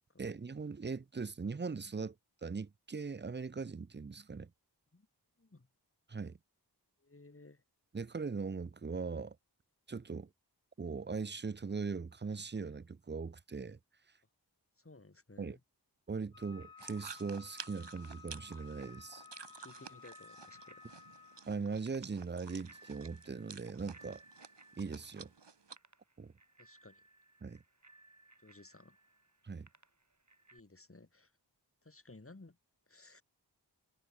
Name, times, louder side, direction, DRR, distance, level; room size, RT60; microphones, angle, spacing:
voice 1, 0.2-2.1 2.4-4.5 6.1-6.4 7.9-9.4 9.9-10.3 10.8-13.8 15.4-15.6 16.1-19.2 21.5-24.2 24.8-25.3 26.2-26.3 27.4-27.6 29.4-29.7, right 4 dB, 25° right, 0.5 m, -40 dB
voice 2, 7.0-7.6 14.8-15.6 19.6-20.8 26.6-27.0 28.4-29.0 30.5-31.3 31.8-32.6 32.9-33.2, left 2 dB, 35° left, 2.2 m, -57 dB
Wind instrument woodwind instrument, 16.3-21.5, left 6 dB, 60° left, 0.9 m, -56 dB
Bicycle bell, 16.5-30.6, right 2 dB, 45° right, 4.5 m, -63 dB
sound 1, 16.8-25.8, right 5 dB, 85° right, 1.5 m, -52 dB
wide cardioid pair, 55°, 41 cm